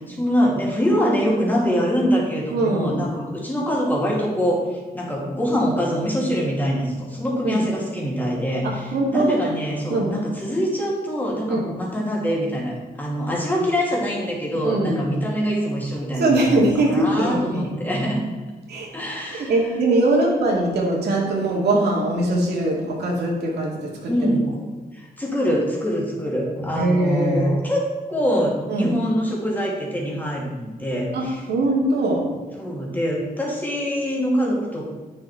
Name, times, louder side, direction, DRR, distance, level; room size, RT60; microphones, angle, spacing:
voice 1, 0.0-18.2 18.9-19.6 24.1-24.5 24.9-31.4 32.6-35.0, equal, 10° left, -4 dB, 2.6 m, -24 dB
voice 2, 2.5-3.1 7.4-7.7 8.6-9.4 9.9-10.1 11.5-11.7 14.6-15.0 16.2-17.7 18.7-18.9 19.3-24.1 26.7-27.5 28.7-29.0 31.1-32.4, right 2 dB, 85° right, -2 dB, 2.2 m, -22 dB
9.0 x 6.5 x 4.4 m, 1.3 s
cardioid pair, 110°, 16 cm